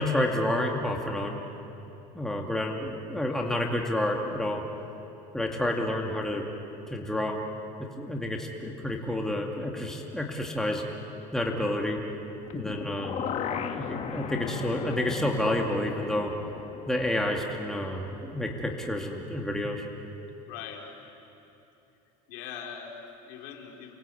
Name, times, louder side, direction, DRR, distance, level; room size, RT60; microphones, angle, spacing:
voice 1, 0.0-1.4 2.1-4.6 5.3-6.5 6.9-7.4 7.8-10.8 11.3-12.0 12.5-13.2 13.8-16.3 16.9-19.8, left 1 dB, 5° left, 0 dB, 2.3 m, -29 dB
sound 1, 12.5-18.5 18.8-18.9, left 8 dB, 40° left, 1.7 m, -37 dB
voice 2, 20.5-20.9 22.3-23.9, left 7 dB, 70° left, 1 dB, 4.2 m, -41 dB
29.0 x 21.5 x 8.5 m, 2.9 s
cardioid pair, 135°, 18 cm